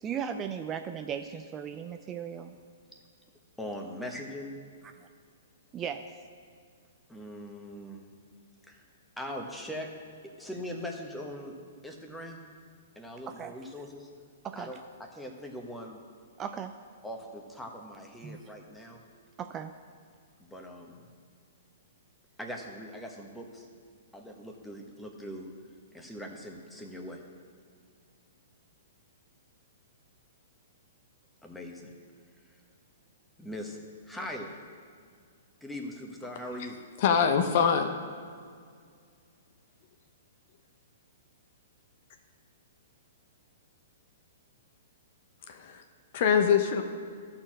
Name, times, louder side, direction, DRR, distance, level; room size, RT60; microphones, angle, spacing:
voice 1, 0.0-2.5 5.7-6.2 13.3-13.5 14.4-14.8 16.4-16.8 18.2-18.4 19.4-19.7, right 7 dB, 25° right, 7 dB, 0.4 m, -37 dB
voice 2, 3.6-4.6 7.1-8.0 8.7-8.9 9.2-9.9 10.2-11.5 11.8-12.4 12.9-14.1 14.6-16.0 17.0-19.0 20.4-21.0 22.4-23.7 24.1-25.5 25.9-27.2 31.4-31.9 33.4-33.8 34.0-34.6 35.6-36.8, equal, 5° left, 1 dB, 1.2 m, -41 dB
voice 3, 37.0-37.9 45.5-45.8 46.1-46.8, left 7 dB, 50° left, 6 dB, 0.8 m, -24 dB
13.0 x 4.4 x 6.1 m, 2.1 s
hypercardioid pair, 120°, 0 cm